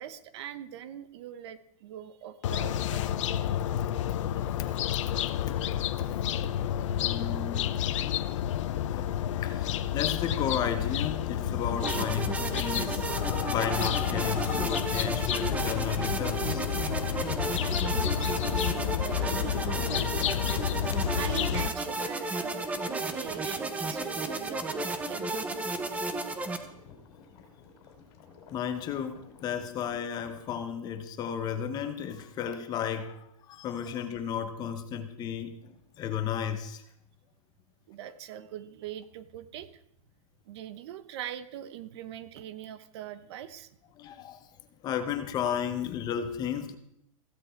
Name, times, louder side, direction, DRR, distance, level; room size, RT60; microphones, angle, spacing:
voice 1, 0.0-3.1 17.6-20.3 20.5-20.8 21.1-24.8 25.1-25.7 37.9-39.8 40.4-43.7, right 10 dB, 45° right, 13 dB, 1.0 m, -42 dB
sound 1, 2.4-21.7, left 10 dB, 55° left, 0.9 m, -30 dB
voice 2, 5.2-5.6 7.0-7.7 8.9-13.1 13.5-16.6 17.2-17.4 19.7-19.8 28.5-36.8 44.0-44.5 44.8-46.7, left 8 dB, 20° left, 9 dB, 1.1 m, -34 dB
sound 2, 11.8-26.6, right 3 dB, 10° right, 1.0 m, -33 dB
sound 3, 12.0-30.6, left 5 dB, 40° left, 3.7 m, -54 dB
15.5 x 15.5 x 4.6 m, 0.75 s
hypercardioid pair, 155°, 18 cm